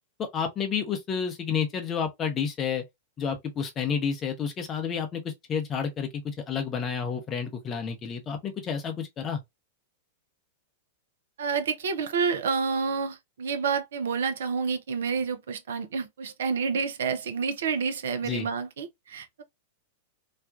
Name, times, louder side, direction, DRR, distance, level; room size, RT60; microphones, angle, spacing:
voice 1, 0.2-2.8 3.2-9.4 18.2-18.5, left 6 dB, 25° left, 0.6 m, -30 dB
voice 2, 11.4-19.4, right 5 dB, 60° right, 0.4 m, -29 dB
2.4 x 2.2 x 2.3 m
figure-of-eight pair, 95°, 0 cm